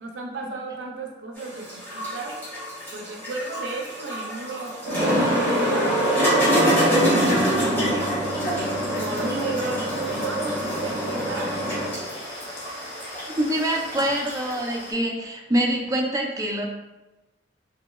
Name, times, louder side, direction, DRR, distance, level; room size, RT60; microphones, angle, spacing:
voice 1, 0.0-2.4 2.9-8.2 8.9-11.6, right 3 dB, 85° right, 2 dB, 0.4 m, -34 dB
sound 1, 1.4-14.5, equal, 10° left, 1.0 m, -24 dB
sound 2, 8.2-14.9, left 1 dB, 70° left, 0.7 m, -39 dB
voice 2, 13.4-16.7, right 1 dB, 20° right, 1 dB, 0.4 m, -25 dB
3.0 x 2.8 x 2.2 m, 1.1 s
head